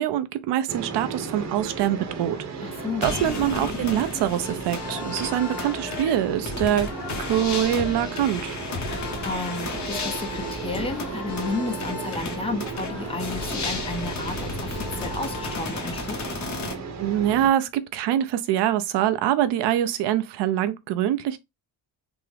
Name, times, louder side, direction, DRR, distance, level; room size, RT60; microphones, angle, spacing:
voice 1, 0.0-6.9 7.2-8.6 17.0-21.4, right 11 dB, 90° right, 0.6 m, -24 dB
sound 1, 0.7-17.5, right 5 dB, 45° right, 0.8 m, -35 dB
sound 2, 0.9-16.6, left 5 dB, 75° left, 1.3 m, -43 dB
voice 2, 2.6-3.1 8.9-16.3, left 3 dB, 15° left, 0.5 m, -32 dB
sound 3, 3.0-16.7, left 4 dB, 45° left, 0.9 m, -34 dB
3.5 x 2.0 x 3.2 m
cardioid pair, 130°, 40 cm